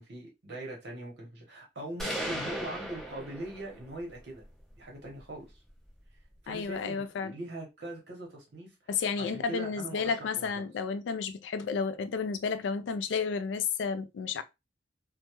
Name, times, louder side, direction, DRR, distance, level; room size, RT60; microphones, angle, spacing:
voice 1, 0.0-4.4 4.8-5.6 6.4-8.8 9.2-10.6, right 1 dB, 65° right, 0.8 m, -41 dB
sound 1, 2.0-4.0, equal, ahead, 0.6 m, -36 dB
voice 2, 6.5-7.3 8.9-14.4, left 5 dB, 75° left, 0.3 m, -32 dB
2.2 x 2.0 x 2.8 m
head